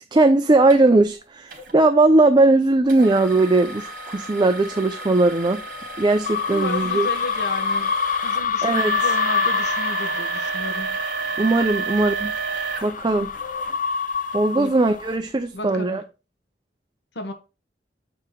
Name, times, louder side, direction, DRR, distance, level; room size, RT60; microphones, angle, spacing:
voice 1, 0.1-5.6 6.0-7.1 8.6-8.9 11.4-12.3 12.8-13.3 14.3-16.0, right 2 dB, 25° right, 0.5 m, -19 dB
sound 1, 0.7-0.8 1.5-1.7 2.9-13.7 14.3-14.4 15.0-15.1, right 5 dB, 55° right, 2.8 m, -31 dB
Surreal Horror Ambience, 6.3-15.1, left 6 dB, 50° left, 0.5 m, -27 dB
voice 2, 6.5-7.9 8.2-11.0 14.5-14.7 15.5-16.0 17.1-17.3, left 1 dB, 70° left, 1.3 m, -33 dB
7.5 x 4.7 x 3.7 m
head